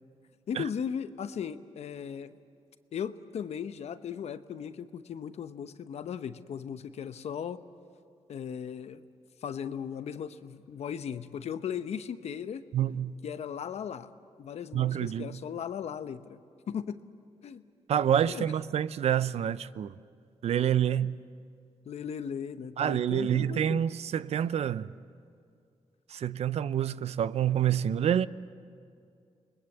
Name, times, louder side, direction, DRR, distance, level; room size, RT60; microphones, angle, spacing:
voice 1, 0.5-2.4 2.9-7.6 8.3-9.0 9.4-12.6 13.2-14.1 14.4-16.4 16.7-17.0 17.4-17.6 18.2-18.5 20.9-21.1 21.8-23.8, left 8 dB, 75° left, 0.9 m, -37 dB
voice 2, 12.7-13.1 14.7-15.3 17.9-19.9 20.4-21.2 22.8-24.9 26.1-28.3, right 9 dB, 70° right, 0.6 m, -27 dB
28.5 x 21.0 x 8.0 m
cardioid pair, 85°, 11 cm